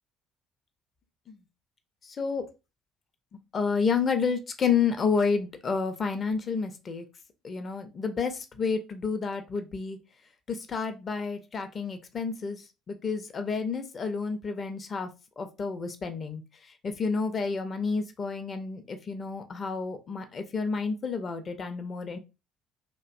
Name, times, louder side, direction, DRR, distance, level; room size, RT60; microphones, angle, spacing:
voice 1, 3.5-7.0 7.4-10.0 10.5-12.6 12.9-15.1 15.4-16.4 16.8-22.2, left 5 dB, 35° left, 8 dB, 0.5 m, -30 dB
2.5 x 2.1 x 2.4 m, 0.28 s
figure-of-eight pair, 50°, 0 cm